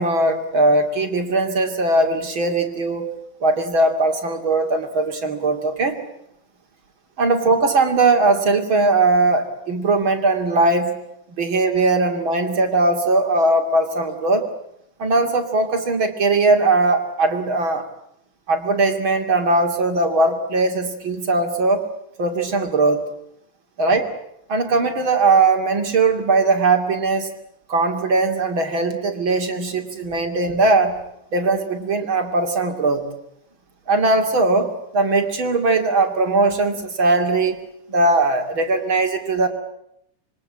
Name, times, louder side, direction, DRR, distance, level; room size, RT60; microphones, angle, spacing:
voice 1, 0.0-3.1 3.4-6.0 7.2-10.9 11.4-14.5 15.0-17.8 18.5-21.8 22.2-23.1 23.8-24.1 24.5-27.3 27.7-31.0 31.3-33.1 33.9-37.6 37.9-39.5, right 3 dB, 40° right, 5 dB, 3.2 m, -19 dB
27.0 x 23.0 x 8.6 m, 0.76 s
omnidirectional pair, 3.6 m